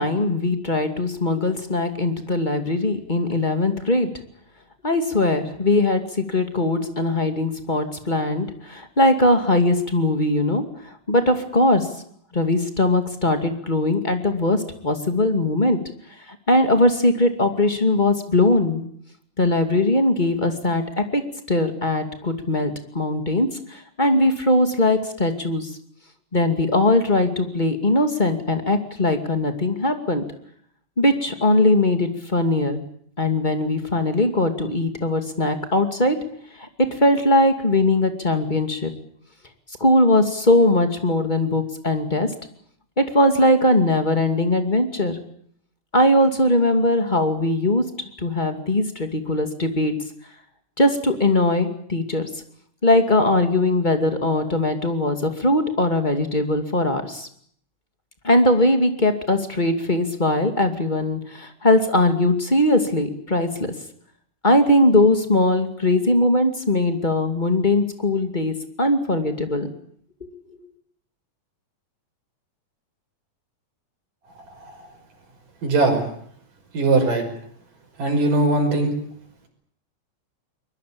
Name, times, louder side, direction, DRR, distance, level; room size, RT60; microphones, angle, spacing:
voice 1, 0.0-4.1 4.8-11.9 12.3-14.6 14.8-15.8 16.5-18.8 19.4-21.2 21.5-25.7 26.3-30.2 31.0-32.8 33.2-36.2 36.6-38.9 39.8-42.3 43.0-45.2 45.9-47.9 48.2-49.9 50.8-52.3 52.8-57.3 58.2-63.5 64.4-69.7, left 1 dB, 15° left, 7 dB, 2.1 m, -20 dB
voice 2, 75.6-76.1 76.7-77.2 78.0-78.9, right 3 dB, 85° right, 3 dB, 7.2 m, -20 dB
23.5 x 21.5 x 8.7 m, 0.64 s
omnidirectional pair, 3.7 m